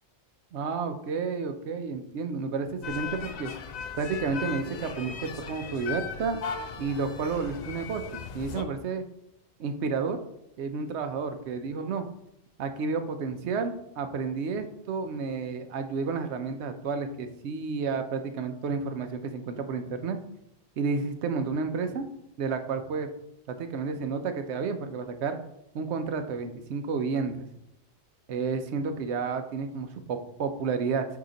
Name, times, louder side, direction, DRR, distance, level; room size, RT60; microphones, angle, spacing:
voice 1, 0.5-3.5 4.0-6.4 6.8-9.0 9.6-10.2 10.6-12.1 12.6-20.2 20.8-22.1 22.4-23.1 23.5-25.4 25.7-27.5 28.3-31.1, right 5 dB, 75° right, 8 dB, 0.9 m, -31 dB
sound 1, 2.8-8.6, left 6 dB, 55° left, 0.5 m, -37 dB
6.4 x 2.9 x 5.1 m, 0.83 s
omnidirectional pair, 1.2 m